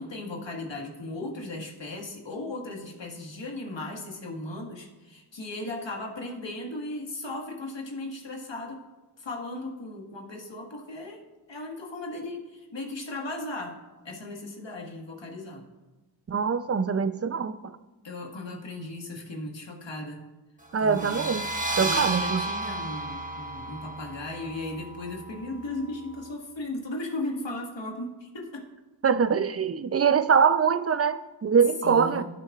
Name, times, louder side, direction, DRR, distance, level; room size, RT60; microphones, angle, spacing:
voice 1, 0.0-8.8 9.2-13.8 14.0-15.7 18.0-20.2 20.8-21.3 21.8-28.7 31.8-32.2, left 2 dB, 70° left, 1.7 m, -36 dB
voice 2, 16.3-17.6 20.7-21.4 21.8-22.4 29.0-32.2, right 6 dB, 35° right, 0.5 m, -23 dB
sound 1, 20.8-26.3, right 2 dB, 15° right, 1.5 m, -33 dB
15.5 x 6.3 x 2.4 m
wide cardioid pair, 50°, 45 cm